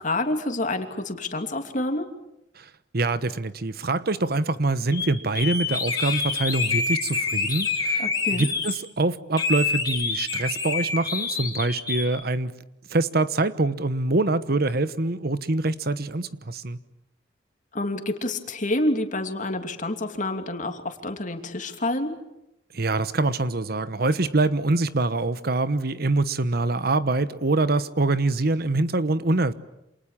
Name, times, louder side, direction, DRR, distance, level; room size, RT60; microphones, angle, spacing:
voice 1, 0.0-2.1 8.0-8.5 17.7-22.2, left 1 dB, 45° left, 2.9 m, -28 dB
voice 2, 2.6-8.1 8.3-12.5 12.9-16.8 22.7-29.5, right 2 dB, 55° right, 1.1 m, -24 dB
sound 1, 4.9-5.1 5.4-8.8 9.4-12.1, left 4 dB, 20° left, 3.7 m, -27 dB
28.5 x 27.5 x 7.5 m
head